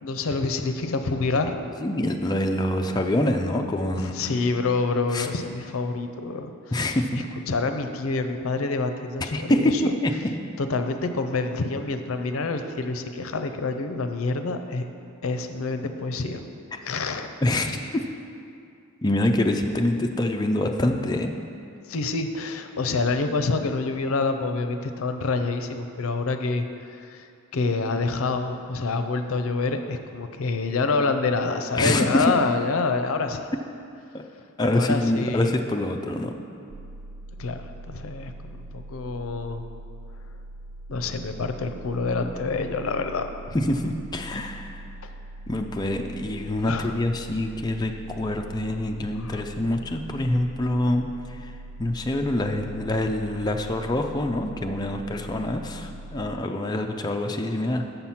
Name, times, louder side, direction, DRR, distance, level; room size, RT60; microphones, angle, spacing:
voice 1, 0.0-1.6 3.9-7.0 7.5-10.0 10.6-14.9 15.2-16.4 16.8-17.3 21.9-33.5 34.7-35.6 37.4-39.6 40.2-40.3 40.9-43.3 45.0-45.1 46.6-47.0 49.2-49.4, left 3 dB, 75° left, 7 dB, 0.5 m, -27 dB
voice 2, 1.8-4.3 5.1-5.3 6.7-7.1 9.3-10.1 17.4-18.0 19.0-21.3 31.8-32.3 34.1-34.2 34.6-36.4 43.5-44.8 45.5-51.5 51.8-57.8, left 1 dB, 20° left, 3 dB, 0.4 m, -25 dB
sound 1, 36.7-56.4, right 1 dB, 90° right, 0.3 m, -42 dB
6.8 x 6.0 x 5.7 m, 2.5 s
head